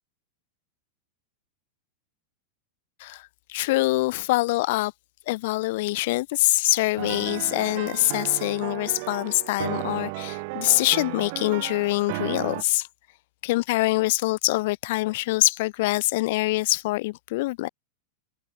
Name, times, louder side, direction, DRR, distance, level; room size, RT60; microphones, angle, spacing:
voice 1, 3.0-4.9 5.3-12.9 13.4-17.7, left 20 dB, 50° left, 0.3 m, -24 dB
sound 1, 7.0-12.6, right 30 dB, 45° right, 0.3 m, -34 dB
supercardioid pair, 170°, 0 cm